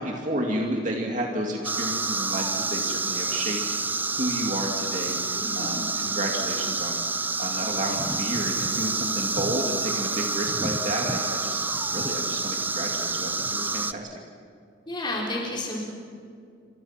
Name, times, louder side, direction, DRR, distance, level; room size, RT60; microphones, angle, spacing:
voice 1, 0.0-14.2, right 1 dB, 40° right, 0 dB, 2.4 m, -31 dB
sound 1, 1.6-13.9, right 3 dB, 10° right, 0.6 m, -28 dB
voice 2, 5.4-5.9 14.9-15.8, left 1 dB, 25° left, -3 dB, 4.2 m, -31 dB
29.5 x 25.5 x 5.9 m, 2.3 s
head